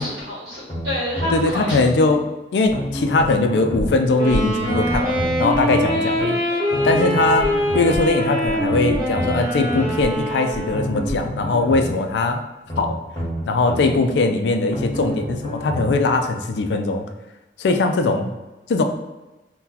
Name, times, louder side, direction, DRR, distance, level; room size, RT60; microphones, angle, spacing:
voice 1, 0.0-1.8 5.9-6.9, left 1 dB, 70° right, -6 dB, 0.9 m, -29 dB
sound 1, 0.7-1.9 2.7-4.0 4.7-5.9 6.7-8.0 8.7-9.9 10.7-12.0 12.7-13.9 14.7-16.0 16.7-16.8, equal, 25° left, 1.0 m, -29 dB
voice 2, 1.3-2.3 2.5-6.4 6.8-7.5 7.7-12.4 12.8-13.0 13.5-17.0 17.6-18.3 18.7-18.8, left 3 dB, 80° left, 6 dB, 0.3 m, -20 dB
sound 2, 2.6-2.8 3.2-3.4 3.8-5.2 5.5-5.8 6.1-6.3 7.4-11.4 11.7-11.9 12.3-12.4, equal, 55° right, 1.3 m, -32 dB
Wind instrument woodwind instrument, 4.1-11.0, equal, 25° right, 0.8 m, -23 dB
2.8 x 2.2 x 3.8 m, 1.1 s
head